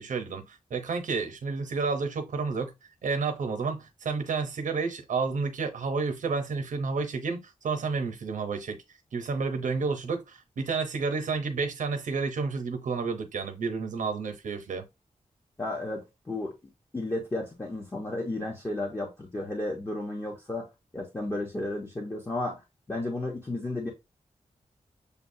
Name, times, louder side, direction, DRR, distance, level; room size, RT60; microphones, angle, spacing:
voice 1, 0.0-2.7 3.0-8.8 9.1-14.8, right 4 dB, 85° right, 0.8 m, -30 dB
voice 2, 15.6-16.5 16.9-20.7 20.9-23.9, left 2 dB, 20° left, 0.9 m, -33 dB
6.8 x 2.3 x 2.6 m
wide cardioid pair, 125°, 13 cm